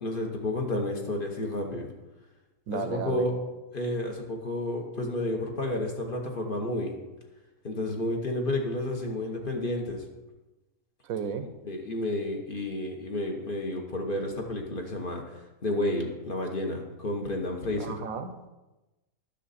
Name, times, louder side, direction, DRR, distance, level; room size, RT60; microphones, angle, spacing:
voice 1, 0.0-1.9 2.7-3.3 3.7-7.0 7.6-10.0 11.6-17.9, left 1 dB, 40° left, 1 dB, 1.2 m, -31 dB
voice 2, 2.7-3.3 11.0-11.5 17.8-18.3, right 6 dB, 75° right, 9 dB, 1.1 m, -33 dB
10.0 x 6.6 x 4.2 m, 1.1 s
omnidirectional pair, 1.5 m